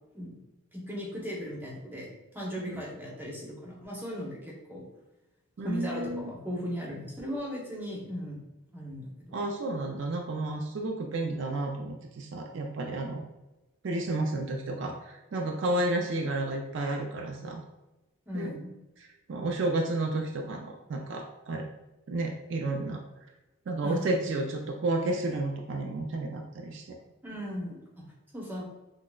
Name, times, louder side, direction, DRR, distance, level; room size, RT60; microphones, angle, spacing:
voice 1, 0.7-2.1 2.3-4.8 5.6-8.5 8.7-9.4 18.3-18.7 23.8-24.1 27.2-28.0 28.3-28.6, equal, 10° right, -3 dB, 0.8 m, -37 dB
voice 2, 5.6-6.3 9.3-13.2 13.8-17.6 18.3-18.5 19.0-21.7 22.1-23.0 23.7-27.0, right 2 dB, 55° right, 2 dB, 0.4 m, -31 dB
6.0 x 2.0 x 2.2 m, 1.0 s
head